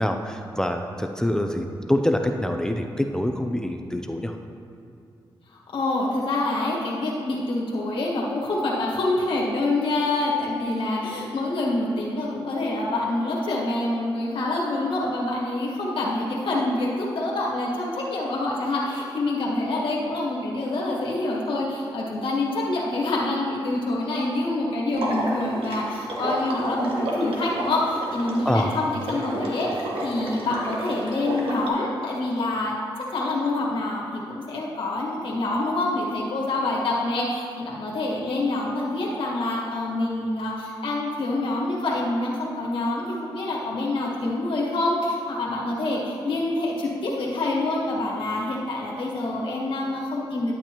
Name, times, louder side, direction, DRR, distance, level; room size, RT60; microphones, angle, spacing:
voice 1, 0.0-4.4 28.4-28.7, left 1 dB, 5° left, 4 dB, 0.6 m, -25 dB
voice 2, 5.7-32.7 33.1-50.5, left 2 dB, 70° left, -5 dB, 1.7 m, -26 dB
Water / Liquid, 24.9-31.7, right 1 dB, 85° right, 1.5 m, -31 dB
11.5 x 8.3 x 3.0 m, 2.6 s
cardioid pair, 75°, 9 cm